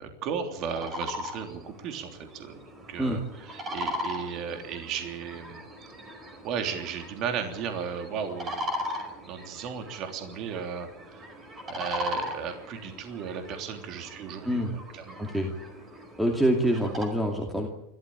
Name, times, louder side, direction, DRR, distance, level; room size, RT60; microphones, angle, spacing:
voice 1, 0.0-2.6 2.9-5.6 6.4-9.0 9.2-11.3 11.7-15.2, right 7 dB, 45° right, 5 dB, 3.2 m, -35 dB
sound 1, 0.6-17.1, left 1 dB, 20° right, 4.9 m, -39 dB
voice 2, 15.2-15.5 16.2-17.7, right 1 dB, 5° right, 2 dB, 2.5 m, -26 dB
28.5 x 13.5 x 8.8 m, 0.88 s
supercardioid pair, 145°, 0 cm